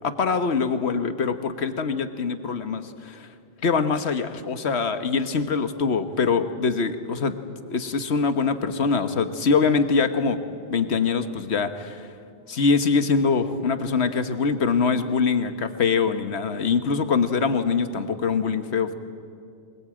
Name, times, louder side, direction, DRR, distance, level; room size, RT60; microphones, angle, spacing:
voice 1, 0.0-3.3 3.6-7.3 7.7-10.4 10.7-12.1 12.5-18.9, left 5 dB, 80° left, 10 dB, 1.5 m, -23 dB
22.5 x 20.5 x 8.8 m, 2.3 s
omnidirectional pair, 1.1 m